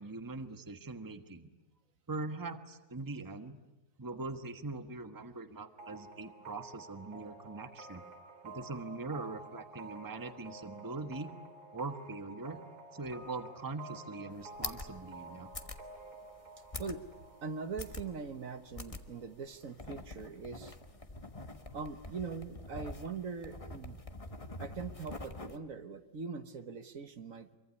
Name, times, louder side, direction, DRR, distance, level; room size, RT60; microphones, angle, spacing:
voice 1, 0.0-1.5 2.1-3.6 4.0-8.0 8.4-11.3 11.7-12.6 12.9-15.5, right 3 dB, 15° right, 8 dB, 1.2 m, -42 dB
sound 1, 5.8-19.3, right 2 dB, 85° right, 3.9 m, -51 dB
sound 2, 14.3-25.6, left 2 dB, 25° left, 1.4 m, -46 dB
voice 2, 17.4-20.8 21.7-24.0 24.6-27.6, right 5 dB, 65° right, 9 dB, 1.6 m, -42 dB
25.5 x 24.0 x 9.8 m, 1.0 s
omnidirectional pair, 1.6 m